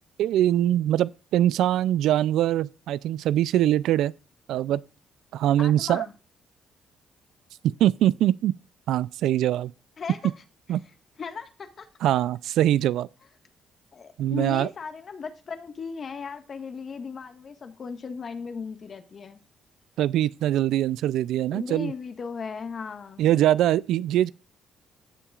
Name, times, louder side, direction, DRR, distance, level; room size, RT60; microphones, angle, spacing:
voice 1, 0.2-4.1 4.5-4.8 5.3-6.1 7.6-8.5 8.9-9.7 10.7-10.8 12.0-13.1 14.2-14.7 20.0-21.9 23.2-24.3, right 12 dB, 85° right, 0.4 m, -23 dB
voice 2, 5.6-6.1 10.0-10.2 11.2-11.9 13.9-19.4 21.5-23.3, left 5 dB, 45° left, 1.5 m, -36 dB
15.0 x 7.2 x 2.4 m
cardioid pair, 90°, 0 cm